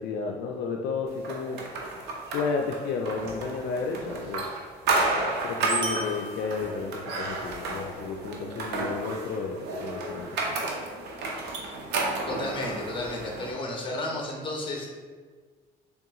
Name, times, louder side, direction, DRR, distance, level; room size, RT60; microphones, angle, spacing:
voice 1, 0.0-1.6 2.0-4.4 5.2-10.6, left 4 dB, 70° left, 2 dB, 0.4 m, -32 dB
sound 1, 1.2-13.5, right 3 dB, 85° right, 0.7 m, -32 dB
sound 2, 2.3-3.0 5.8-7.2, right 1 dB, 25° right, 0.7 m, -39 dB
voice 2, 12.3-14.9, left 2 dB, 30° left, 0 dB, 0.9 m, -32 dB
3.5 x 3.4 x 2.9 m, 1.5 s
cardioid pair, 110°, 17 cm